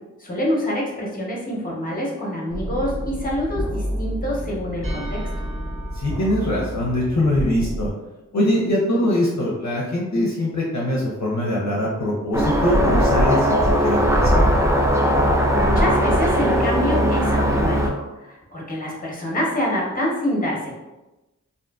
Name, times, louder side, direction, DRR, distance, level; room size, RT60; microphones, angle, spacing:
voice 1, 0.2-5.2 15.3-20.7, equal, 25° left, -3 dB, 0.8 m, -26 dB
sound 1, 2.5-7.9, equal, 75° right, 0.9 m, -29 dB
voice 2, 5.9-7.9 8.3-14.4, left 1 dB, 55° left, -4 dB, 0.6 m, -22 dB
sound 2, 12.3-17.9, equal, 10° right, 0.3 m, -18 dB
2.5 x 2.4 x 2.3 m, 1.0 s
wide cardioid pair, 55°, 33 cm